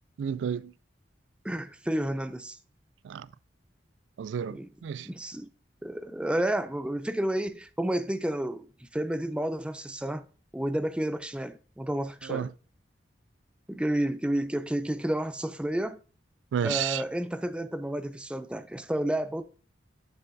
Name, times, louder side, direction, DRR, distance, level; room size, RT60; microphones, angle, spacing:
voice 1, 0.2-0.7 3.0-3.3 4.2-5.1 12.2-12.5 16.5-17.0, right 8 dB, 85° right, 0.3 m, -31 dB
voice 2, 1.4-2.6 4.5-4.7 5.1-5.5 5.8-10.3 10.5-12.5 13.7-16.0 16.6-19.4, right 1 dB, 5° right, 0.3 m, -31 dB
6.9 x 6.8 x 2.6 m
head